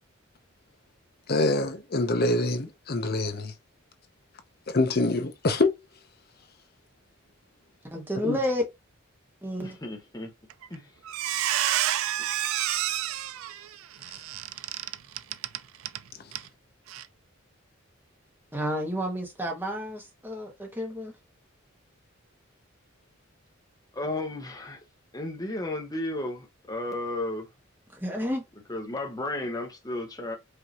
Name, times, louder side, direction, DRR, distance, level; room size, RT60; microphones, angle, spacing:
voice 1, 1.3-3.5 4.7-5.8 8.2-8.4 16.2-16.3, left 2 dB, 45° left, 0.7 m, -25 dB
voice 2, 7.9-8.6 9.4-9.8 18.5-21.1 27.9-28.4, equal, 10° right, 1.1 m, -30 dB
voice 3, 9.6-10.3 10.7-11.0 23.9-24.8 25.1-27.5 28.7-30.4, left 2 dB, 20° left, 0.9 m, -33 dB
Squeak, 10.5-10.7 11.0-16.0 16.3-16.5 16.9-17.0, right 12 dB, 85° right, 0.4 m, -29 dB
5.0 x 2.7 x 2.9 m
head